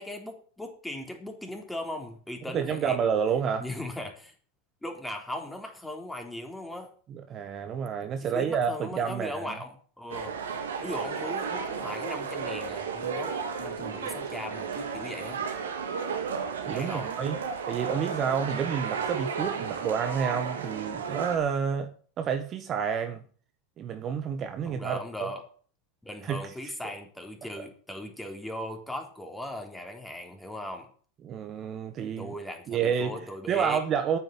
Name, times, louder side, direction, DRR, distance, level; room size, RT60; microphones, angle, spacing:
voice 1, 0.0-3.0 3.6-4.3 4.8-6.9 8.3-10.4 10.8-13.3 13.6-15.4 16.7-17.1 24.6-25.4 26.0-30.9 32.2-33.8, left 1 dB, 5° left, 3.8 m, -38 dB
voice 2, 2.5-3.6 7.1-9.5 16.6-17.4 17.7-21.9 22.2-23.2 23.8-25.3 26.2-26.5 27.6-27.7 31.2-32.3 32.7-33.2 33.5-34.2, right 7 dB, 40° right, 1.5 m, -29 dB
sound 1, 10.1-21.4, right 6 dB, 90° right, 2.5 m, -33 dB
9.6 x 7.5 x 9.1 m
hypercardioid pair, 105°, 0 cm